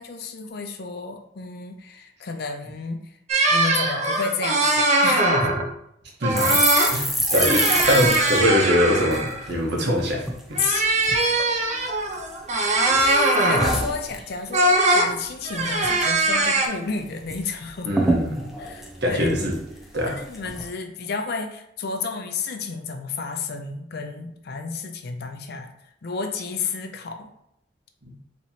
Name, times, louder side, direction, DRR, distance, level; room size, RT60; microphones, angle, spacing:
voice 1, 0.0-3.1 3.5-5.3 6.8-7.5 10.6-10.8 11.4-11.5 12.8-17.9 18.6-19.5 20.1-25.7 26.0-27.3, left 4 dB, 60° left, 5 dB, 0.5 m, -31 dB
sound 1, 3.3-5.7 6.2-6.9 7.2-9.5 10.5-13.8 14.5-15.1 15.5-16.7, right 2 dB, 40° right, 0.6 m, -21 dB
voice 2, 6.2-6.6 6.9-10.6 17.8-18.5 19.0-19.6 19.9-20.2 28.0-28.1, equal, 65° right, -1 dB, 1.1 m, -23 dB
sound 2, 6.3-9.9 10.2-10.4 10.7-11.3 11.8-12.6 12.9-14.6 14.9-15.1 15.4-16.0 16.3-16.4 16.7-17.4 17.6-17.7 17.9-19.8 20.3-20.6, right 1 dB, ahead, 0.5 m, -27 dB
4.5 x 3.0 x 2.8 m, 0.78 s
head